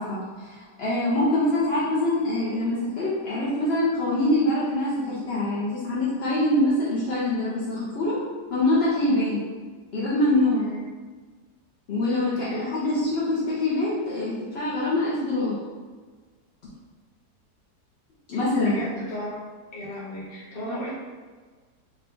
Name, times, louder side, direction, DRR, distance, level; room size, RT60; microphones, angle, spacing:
voice 1, 0.0-8.2 8.5-9.4 9.9-10.6 11.9-15.6 18.3-18.8, left 1 dB, 55° left, -8 dB, 0.7 m, -24 dB
voice 2, 12.4-13.0 18.6-19.3 19.7-20.9, equal, 35° left, -7 dB, 1.2 m, -35 dB
3.7 x 2.3 x 3.8 m, 1.4 s
omnidirectional pair, 1.8 m